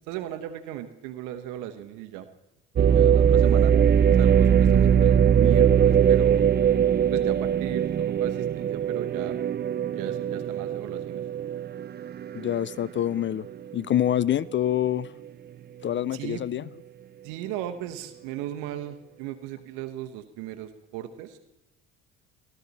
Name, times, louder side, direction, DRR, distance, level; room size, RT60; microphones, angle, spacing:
voice 1, 0.1-2.3 2.8-3.7 4.2-6.4 7.1-9.4 9.9-11.2 12.3-12.9 16.1-16.4 17.2-21.4, right 12 dB, 80° right, 10 dB, 1.0 m, -37 dB
sound 1, 2.8-12.7 13.2-13.3 13.9-14.3, right 8 dB, 30° right, 0.6 m, -21 dB
voice 2, 12.3-13.5 13.7-15.1 15.8-16.7, left 11 dB, 40° left, 20 dB, 0.4 m, -26 dB
16.0 x 12.0 x 4.1 m, 0.98 s
supercardioid pair, 65°, 31 cm